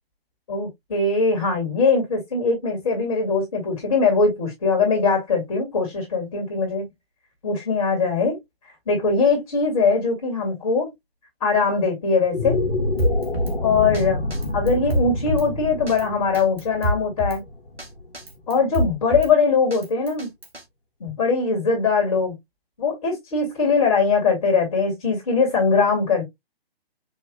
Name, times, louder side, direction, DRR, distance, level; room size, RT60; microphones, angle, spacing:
voice 1, 0.5-6.9 7.4-8.4 8.6-10.9 11.4-12.6 13.6-14.2 14.5-17.4 18.5-20.3 21.0-22.3 22.8-26.2, left 4 dB, 35° left, 2.1 m, -21 dB
sound 1, 12.2-18.6, left 2 dB, 60° left, 1.2 m, -27 dB
Drum kit, 13.0-13.6 13.9-14.0 14.3-15.5 15.9-16.0 16.3-17.4 17.8-17.9 18.1-19.3 19.7-20.6, equal, 75° right, 1.7 m, -26 dB
5.6 x 2.9 x 2.2 m
figure-of-eight pair, 140°, 31 cm